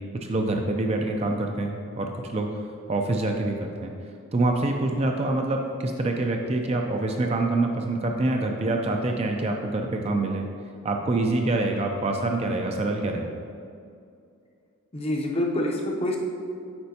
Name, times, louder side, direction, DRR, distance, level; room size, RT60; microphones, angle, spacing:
voice 1, 0.0-2.5 2.9-3.9 4.3-10.5 10.8-13.3, right 2 dB, 25° right, 2 dB, 0.3 m, -26 dB
voice 2, 14.9-16.2, left 1 dB, 25° left, 0 dB, 0.6 m, -26 dB
8.7 x 4.2 x 2.7 m, 2.4 s
head